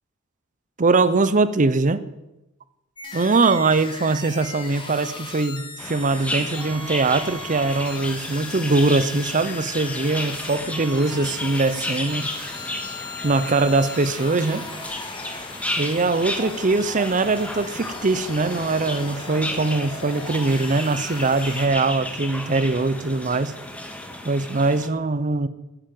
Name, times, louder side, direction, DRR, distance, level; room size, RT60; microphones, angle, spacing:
voice 1, 0.8-2.0 3.1-12.3 13.2-14.7 15.8-23.6 24.2-25.5, right 3 dB, 40° right, 14 dB, 0.7 m, -22 dB
sound 1, 3.0-21.7, left 3 dB, 25° left, 2.2 m, -37 dB
sound 2, 5.8-24.9, left 1 dB, 5° left, 1.6 m, -33 dB
13.5 x 9.9 x 7.7 m, 0.97 s
head